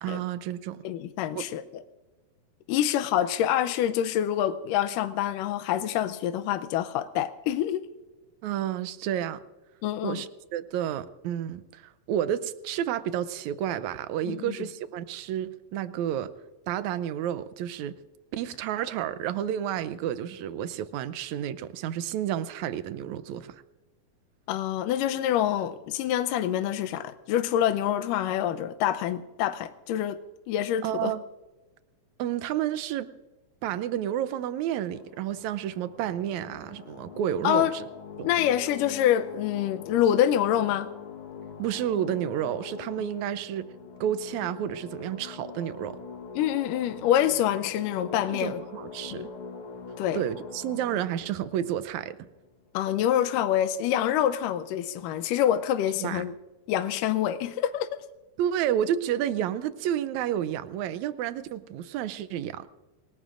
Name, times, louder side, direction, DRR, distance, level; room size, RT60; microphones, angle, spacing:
voice 1, 0.0-0.8 1.3-1.5 8.4-9.4 10.0-16.3 16.7-17.9 18.3-23.6 30.8-31.2 32.2-33.1 33.6-37.8 38.2-38.3 41.6-43.7 44.0-46.0 48.3-49.3 50.1-52.2 56.0-56.2 58.4-62.7, right 10 dB, 80° right, 1.7 m, -30 dB
voice 2, 0.8-1.6 2.7-7.9 9.8-10.2 14.3-14.5 24.5-30.2 30.5-31.1 37.4-37.7 38.2-40.9 46.4-48.6 49.1-49.3 50.0-50.2 52.7-56.3 56.7-57.9, left 11 dB, 80° left, 2.2 m, -26 dB
sound 1, 34.8-52.9, left 5 dB, 55° left, 1.7 m, -43 dB
29.0 x 19.0 x 2.5 m
omnidirectional pair, 4.0 m